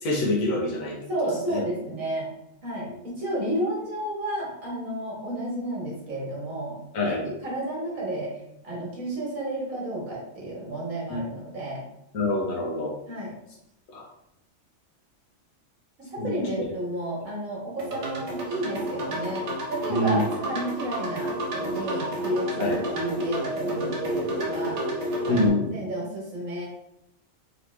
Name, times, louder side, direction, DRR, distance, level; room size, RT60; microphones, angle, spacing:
voice 1, 0.0-1.0 1.5-1.6 6.9-7.2 11.1-11.2 12.1-12.9 13.9-14.1 16.2-16.7 19.9-20.2 22.6-22.8 25.3-25.7, left 2 dB, 85° left, -3 dB, 1.3 m, -26 dB
voice 2, 1.1-2.3 2.6-6.8 7.1-8.3 8.6-11.8 13.1-13.3 16.1-24.8 25.2-26.7, right 1 dB, 90° right, -4 dB, 1.9 m, -31 dB
sound 1, 17.8-25.5, right 1 dB, 60° right, 1.1 m, -30 dB
3.9 x 3.1 x 3.2 m, 0.82 s
omnidirectional pair, 1.4 m